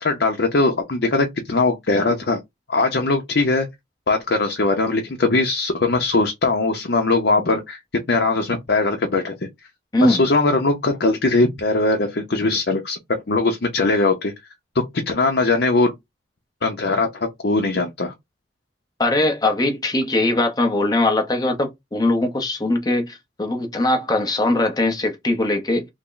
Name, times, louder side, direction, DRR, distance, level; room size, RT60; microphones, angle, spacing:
voice 1, 0.0-2.4 2.7-3.7 4.1-7.8 8.1-9.3 10.0-13.0 13.3-14.3 15.1-15.9 16.6-18.1, left 3 dB, 65° left, 0.7 m, -20 dB
voice 2, 19.0-25.8, left 2 dB, 20° left, 0.8 m, -21 dB
3.5 x 2.1 x 3.8 m
head